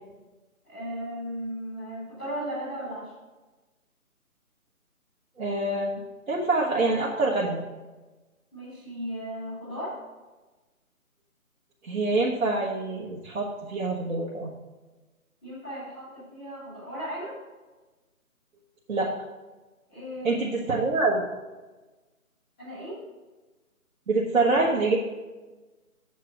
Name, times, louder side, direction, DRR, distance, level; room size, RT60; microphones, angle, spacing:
voice 1, 0.7-3.1 8.5-9.9 15.4-17.3 19.9-20.7 22.6-23.0, equal, 5° left, -14 dB, 1.9 m, -36 dB
voice 2, 5.4-5.9 6.3-7.6 11.8-14.5 18.9-19.1 20.2-21.2 24.1-25.0, right 3 dB, 65° right, -4 dB, 1.5 m, -25 dB
7.6 x 5.6 x 6.1 m, 1.2 s
hypercardioid pair, 180°, 43 cm